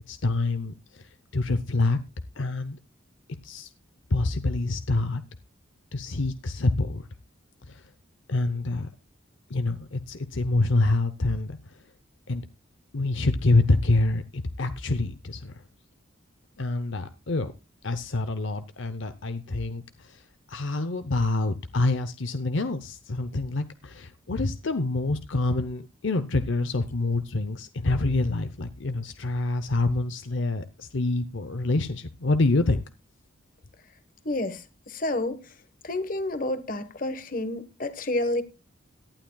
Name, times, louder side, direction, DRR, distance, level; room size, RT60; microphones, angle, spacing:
voice 1, 0.1-2.0 2.4-2.8 3.4-3.7 4.1-5.2 5.9-7.1 7.7-7.8 8.3-8.9 9.5-11.8 12.3-12.5 12.9-15.6 16.6-17.5 17.8-20.2 20.5-32.8, left 2 dB, 65° left, 0.7 m, -26 dB
voice 2, 34.2-34.6 34.9-35.4 35.8-38.4, left 2 dB, 40° left, 1.2 m, -29 dB
18.0 x 12.0 x 2.3 m
head